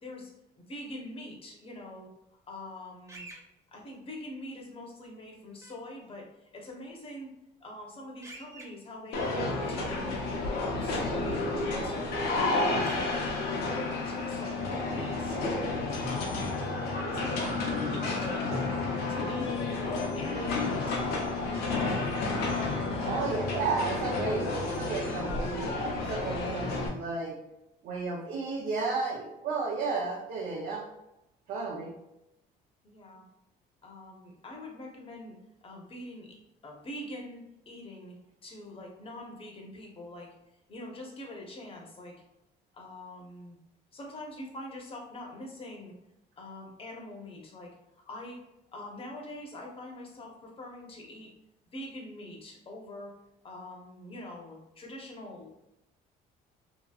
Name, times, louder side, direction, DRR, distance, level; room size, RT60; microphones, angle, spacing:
voice 1, 0.0-2.1 2.5-3.3 3.7-7.3 7.6-10.2 10.5-12.2 12.5-15.7 16.1-16.8 17.1-18.7 19.1-21.0 32.8-33.2 33.8-36.4 36.6-38.2 38.4-40.3 40.7-42.2 42.7-43.6 43.9-45.9 46.4-47.7 48.1-48.4 48.7-51.3 51.7-53.1 53.4-55.6, left 1 dB, 35° left, 0 dB, 0.8 m, -44 dB
sound 1, 3.1-3.4 5.6-5.7 8.2-8.6 11.0-11.1 12.8-13.0, right 2 dB, 15° right, 0.5 m, -46 dB
sound 2, 9.1-26.9, left 3 dB, 75° left, 0.7 m, -31 dB
voice 2, 23.0-27.4 27.8-30.8 31.5-31.9, right 4 dB, 65° right, -3 dB, 0.6 m, -33 dB
2.8 x 2.6 x 2.3 m, 0.87 s
cardioid pair, 110°, 17 cm